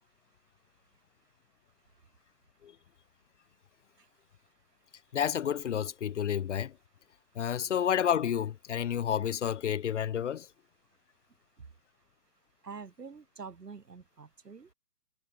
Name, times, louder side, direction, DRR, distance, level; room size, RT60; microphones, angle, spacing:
voice 1, 0.0-5.2 7.0-7.4 10.8-14.7, right 5 dB, 75° right, 2.9 m, -52 dB
voice 2, 5.1-6.7 7.4-10.5, left 9 dB, 45° left, 0.9 m, -30 dB
figure-of-eight pair, 135°, 48 cm